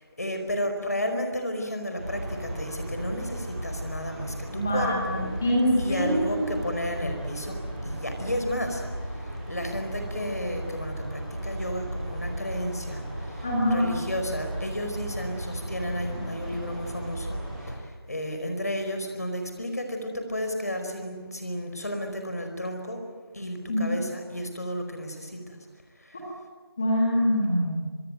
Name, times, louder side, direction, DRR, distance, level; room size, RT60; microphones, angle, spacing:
voice 1, 0.2-5.3 5.8-7.5 7.8-8.8 9.5-13.0 13.7-17.4 17.6-17.8 18.1-23.0 23.3-25.6, equal, 40° left, 5 dB, 4.9 m, -32 dB
sound 1, 2.0-17.7, right 1 dB, 20° right, 7.7 m, -35 dB
voice 2, 4.5-6.5 13.4-13.9 23.7-23.9 26.8-27.9, equal, 5° left, -4 dB, 1.9 m, -24 dB
25.5 x 21.5 x 9.2 m, 1.5 s
figure-of-eight pair, 180°, 13 cm